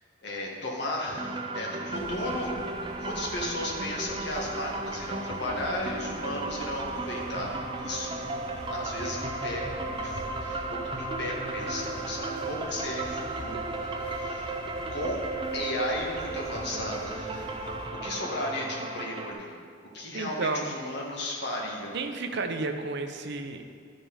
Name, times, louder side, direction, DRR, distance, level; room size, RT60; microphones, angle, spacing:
voice 1, 0.2-2.5 3.0-8.2 8.7-13.5 13.8-15.2 15.5-17.5 18.0-19.5 19.9-22.0, left 1 dB, 60° left, -2 dB, 1.6 m, -35 dB
sound 1, 1.2-19.3, right 3 dB, 25° right, 0.6 m, -35 dB
sound 2, 1.9-17.9, equal, 5° left, 1.3 m, -45 dB
voice 2, 20.1-20.7 21.9-23.6, right 3 dB, 60° right, 6 dB, 0.7 m, -32 dB
12.5 x 5.2 x 5.6 m, 2.2 s
head